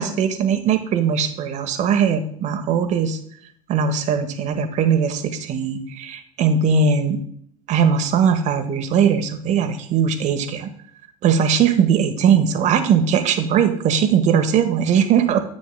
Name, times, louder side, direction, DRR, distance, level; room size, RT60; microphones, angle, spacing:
voice 1, 0.0-3.2 3.7-7.2 7.7-10.7 11.2-15.4, right 7 dB, 40° right, 9 dB, 1.1 m, -19 dB
9.7 x 8.5 x 2.2 m, 0.63 s
hypercardioid pair, 80°, 18 cm